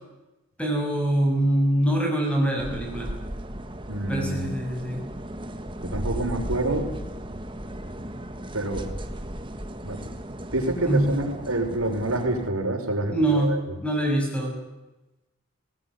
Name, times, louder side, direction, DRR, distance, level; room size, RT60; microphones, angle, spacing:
voice 1, 0.6-3.1 4.1-5.0 10.9-11.1 13.1-13.6 13.8-14.6, right 1 dB, 5° left, 1 dB, 6.9 m, -24 dB
sound 1, 2.6-12.5, right 1 dB, 25° right, 1.7 m, -36 dB
voice 2, 3.9-4.5 5.9-6.9 8.5-8.9 9.8-10.1 10.5-13.6, right 2 dB, 85° right, 2 dB, 5.9 m, -27 dB
21.0 x 19.0 x 9.9 m, 1.0 s
head